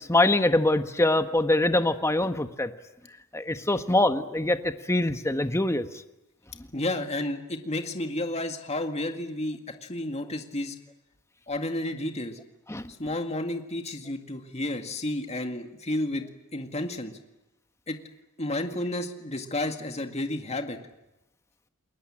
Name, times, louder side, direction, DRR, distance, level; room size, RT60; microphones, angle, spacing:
voice 1, 0.0-2.7 3.3-5.9 12.7-12.8, left 1 dB, 10° left, 9 dB, 1.2 m, -24 dB
voice 2, 6.7-10.8 11.5-12.4 13.0-16.3 16.5-17.2 17.9-18.0 18.4-20.8, left 1 dB, 30° left, 5 dB, 2.1 m, -31 dB
29.5 x 21.0 x 8.8 m, 0.93 s
head